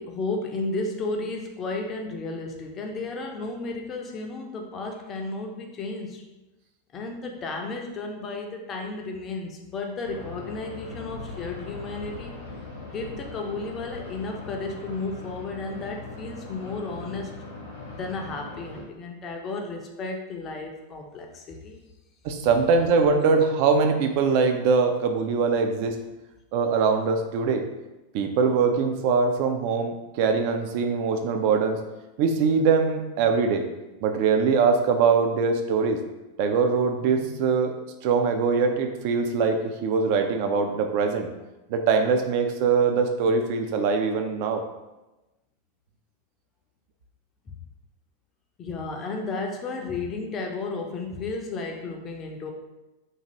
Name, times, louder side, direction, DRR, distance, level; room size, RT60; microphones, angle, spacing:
voice 1, 0.0-6.2 6.9-12.4 12.9-17.4 17.9-21.8 47.5-47.6 48.6-52.5, left 3 dB, 25° left, 2 dB, 0.4 m, -33 dB
sound 1, 10.0-18.8, left 3 dB, 65° left, 0.8 m, -40 dB
voice 2, 22.2-26.0 26.5-27.6 28.1-31.8 32.2-33.7 34.0-36.0 36.4-37.7 38.0-41.3 41.7-44.6, right 5 dB, 45° right, 5 dB, 0.3 m, -22 dB
2.6 x 2.4 x 2.9 m, 1.0 s
figure-of-eight pair, 90°, 0 cm